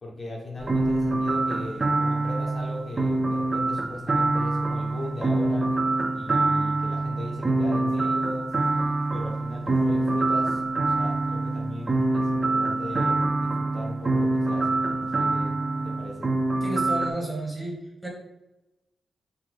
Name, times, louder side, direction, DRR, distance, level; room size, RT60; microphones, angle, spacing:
voice 1, 0.0-5.8 6.1-8.6 9.1-16.3, left 2 dB, 40° left, -2 dB, 0.6 m, -38 dB
sound 1, 0.6-17.1, right 2 dB, 25° right, 0.3 m, -25 dB
voice 2, 16.6-18.1, right 1 dB, 10° right, -2 dB, 1.2 m, -32 dB
4.6 x 2.2 x 3.7 m, 0.95 s
wide cardioid pair, 140°, 0 cm